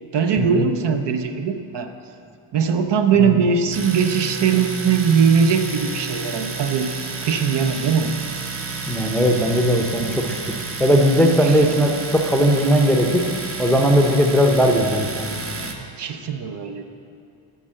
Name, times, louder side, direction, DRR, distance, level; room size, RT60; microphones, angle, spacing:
voice 1, 0.1-1.9 2.5-6.9 7.2-8.1 11.4-11.6 15.5-16.8, right 6 dB, 60° right, 6 dB, 0.7 m, -20 dB
Domestic sounds home sounds, 3.7-15.7, right 3 dB, 30° right, 0.8 m, -31 dB
voice 2, 8.9-10.4 10.8-13.2 13.6-15.4, equal, ahead, 1 dB, 0.6 m, -18 dB
8.2 x 5.4 x 7.5 m, 2.6 s
wide cardioid pair, 135°, 47 cm